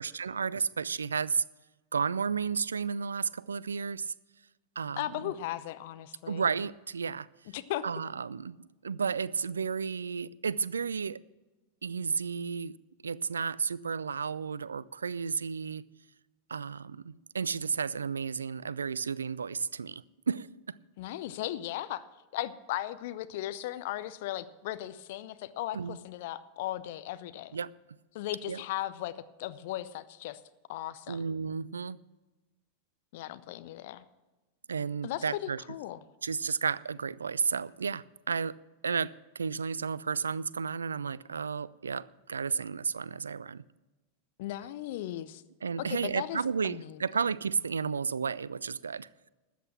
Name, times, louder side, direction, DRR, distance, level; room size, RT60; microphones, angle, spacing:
voice 1, 0.0-1.4 1.9-4.1 4.8-5.3 6.3-7.3 7.8-8.6 8.8-11.2 11.8-12.8 13.0-15.8 16.5-20.8 25.7-26.0 27.5-27.7 28.5-28.6 31.1-32.0 34.7-35.6 36.2-38.5 38.8-43.6 45.6-49.3, right 6 dB, 70° right, 0.3 m, -32 dB
voice 2, 5.0-6.4 7.5-7.8 21.0-22.1 22.3-27.6 28.1-29.1 29.4-30.4 30.7-31.3 33.1-34.0 35.0-36.0 44.4-45.4 45.8-47.0, left 14 dB, 50° left, 0.6 m, -37 dB
13.5 x 8.5 x 7.4 m
figure-of-eight pair, 90°, 0 cm